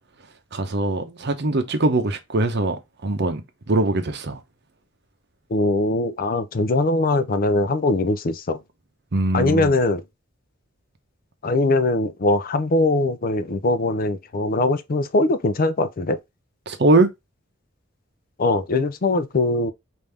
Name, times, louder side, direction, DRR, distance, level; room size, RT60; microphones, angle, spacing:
voice 1, 0.5-3.4 3.7-4.4 9.1-9.7 16.7-17.1, right 2 dB, 60° right, 0.8 m, -21 dB
voice 2, 5.5-8.6 9.3-10.0 11.4-16.2 18.4-19.7, left 2 dB, 45° left, 0.5 m, -21 dB
5.2 x 2.7 x 3.3 m
head